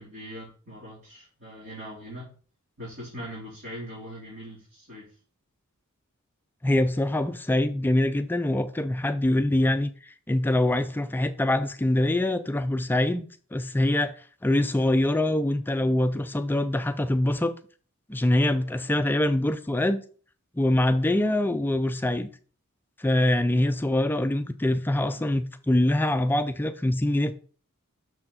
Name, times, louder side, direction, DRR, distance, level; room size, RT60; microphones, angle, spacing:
voice 1, 0.0-2.3 2.8-5.1 25.1-25.3, equal, 50° right, 3.4 m, -41 dB
voice 2, 6.6-13.3 13.5-14.2 14.4-17.5 18.1-20.0 20.6-22.3 23.0-27.3, left 1 dB, 10° left, 0.3 m, -24 dB
6.4 x 4.4 x 4.2 m
head